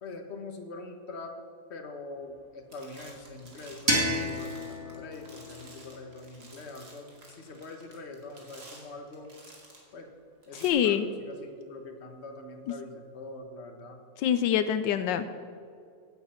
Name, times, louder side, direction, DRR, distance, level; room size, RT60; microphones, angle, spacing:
voice 1, 0.0-1.4 1.7-9.3 9.9-10.1 10.5-14.0, left 2 dB, 40° left, 4 dB, 1.4 m, -43 dB
sound 1, 2.2-2.4 2.7-9.9 10.4-10.7, right 2 dB, 60° right, 2.9 m, -52 dB
sound 2, 3.9-6.7, equal, 15° right, 1.7 m, -32 dB
voice 2, 10.5-11.0 14.2-15.3, left 9 dB, 85° left, 11 dB, 1.3 m, -25 dB
16.0 x 8.5 x 5.7 m, 2.3 s
omnidirectional pair, 1.9 m